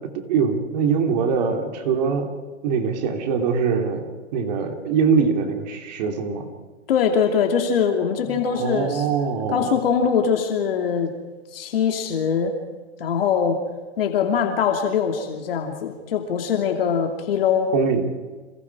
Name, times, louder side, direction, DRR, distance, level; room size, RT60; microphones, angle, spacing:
voice 1, 0.2-2.3 2.6-6.5 8.3-9.7 17.7-18.0, right 6 dB, 35° right, 4 dB, 3.3 m, -23 dB
voice 2, 6.9-9.0 9.5-11.1 11.5-12.5 13.0-13.6 14.0-17.7, left 7 dB, 50° left, 3 dB, 3.0 m, -22 dB
30.0 x 27.5 x 4.9 m, 1.3 s
hypercardioid pair, 160°, 36 cm